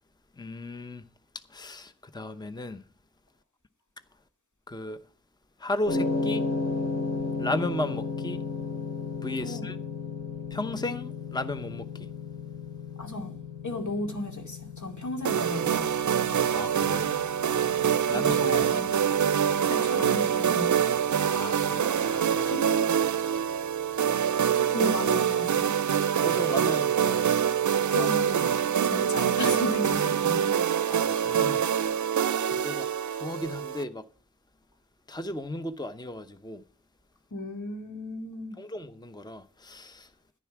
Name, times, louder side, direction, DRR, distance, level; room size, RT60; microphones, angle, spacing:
voice 1, 0.4-1.0 1.5-2.8 4.7-5.0 5.6-6.5 7.4-8.4 9.2-9.8 10.5-12.1 16.5-17.1 18.1-18.5 21.3-22.6 26.2-27.4 30.9-32.0 32.4-34.1 35.1-36.6 38.6-40.1, left 1 dB, 15° left, 0.8 m, -35 dB
sound 1, 5.9-24.1, left 3 dB, 55° left, 6.4 m, -35 dB
voice 2, 13.0-13.3 13.6-16.2 18.1-18.9 19.7-20.9 22.4-22.9 24.5-25.7 27.9-28.5 28.8-30.6 37.3-38.6, left 2 dB, 70° left, 2.4 m, -34 dB
sound 2, 15.2-33.8, right 8 dB, 75° right, 0.5 m, -25 dB
10.5 x 10.5 x 5.9 m
wide cardioid pair, 60°, 30 cm